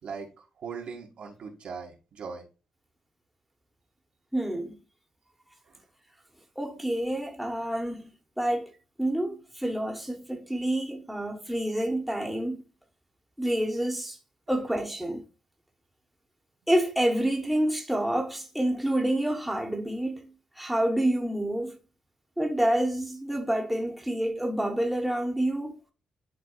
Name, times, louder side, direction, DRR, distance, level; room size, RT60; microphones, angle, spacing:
voice 1, 0.0-2.4 5.7-5.8, right 5 dB, 70° right, 2.2 m, -40 dB
voice 2, 4.3-4.7 6.6-8.1 8.4-8.7 9.0-12.6 13.4-14.2 14.5-15.2 16.7-20.3 20.6-21.8 22.4-25.7, right 1 dB, 5° right, 1.3 m, -28 dB
11.0 x 4.0 x 2.4 m
cardioid pair, 100°, 2 cm